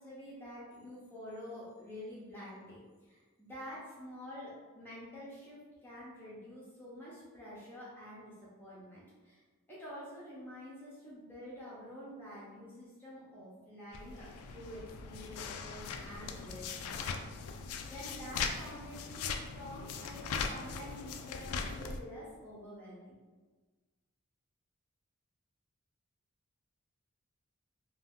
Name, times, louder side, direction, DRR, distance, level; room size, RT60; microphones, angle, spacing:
voice 1, 0.0-8.3 8.6-9.4 9.7-17.1 17.9-23.2, equal, 10° left, -8 dB, 0.7 m, -48 dB
sound 1, 13.9-22.0, left 5 dB, 85° left, 0.3 m, -40 dB
2.7 x 2.3 x 3.5 m, 1.3 s
head